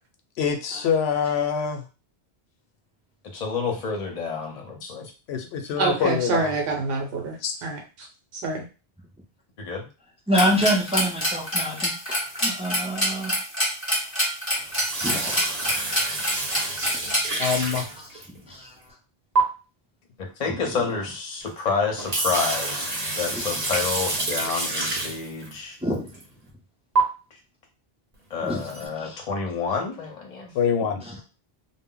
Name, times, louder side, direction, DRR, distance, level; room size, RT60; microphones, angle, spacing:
voice 1, 0.4-1.8 5.3-6.5 7.4-7.5 17.4-17.9 30.5-31.0, left 7 dB, 85° left, 5 dB, 0.8 m, -25 dB
voice 2, 3.2-5.1 9.6-9.9 20.2-25.8 28.3-30.5, left 5 dB, 45° left, 1 dB, 0.7 m, -29 dB
voice 3, 5.8-8.1 8.3-8.7, right 4 dB, 70° right, 2 dB, 0.9 m, -27 dB
sound 1, 10.3-17.2, equal, 15° left, 0.8 m, -25 dB
voice 4, 10.3-13.4 15.0-15.8 18.5-18.7 23.3-23.4 25.8-26.1 28.4-28.6 29.0-29.1, equal, 10° right, -2 dB, 0.4 m, -26 dB
sound 2, 14.6-18.5 19.4-19.5 21.4-21.5 21.9-25.5 26.1-26.2 27.0-27.1 28.6-28.8, right 2 dB, 45° right, 0.8 m, -27 dB
2.1 x 2.0 x 3.7 m, 0.32 s
omnidirectional pair, 1.0 m